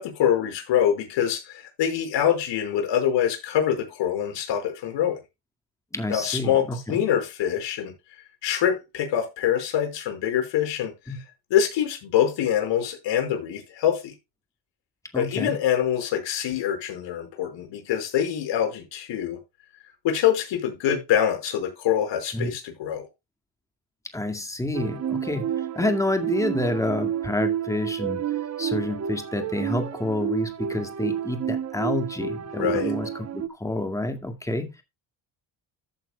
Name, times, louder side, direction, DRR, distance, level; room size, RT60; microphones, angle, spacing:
voice 1, 0.0-5.2 6.1-7.9 8.4-10.9 11.5-14.1 15.2-19.4 20.0-23.0 32.6-32.9, left 9 dB, 70° left, 5.2 m, -25 dB
voice 2, 5.9-7.0 11.1-11.2 15.1-15.6 22.3-22.5 24.1-28.2 28.6-34.8, left 2 dB, 5° left, 2.0 m, -28 dB
sound 1, 24.7-33.5, right 9 dB, 35° right, 0.9 m, -30 dB
14.0 x 8.9 x 2.3 m
cardioid pair, 135°, 45 cm